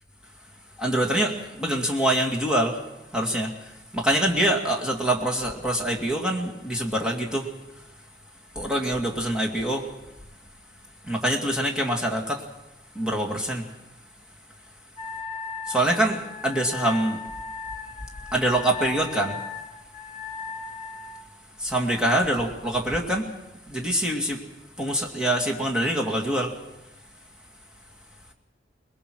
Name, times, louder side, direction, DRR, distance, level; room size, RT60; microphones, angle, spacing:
voice 1, 0.8-2.8 3.1-7.9 8.5-9.9 11.0-12.5 12.9-13.7 15.7-17.2 18.3-19.4 21.6-23.3 23.6-24.4 24.8-26.6, right 1 dB, 5° right, -1 dB, 2.3 m, -25 dB
Wind instrument woodwind instrument, 15.0-21.3, left 4 dB, 35° left, 1.4 m, -37 dB
22.0 x 20.5 x 6.3 m, 0.93 s
head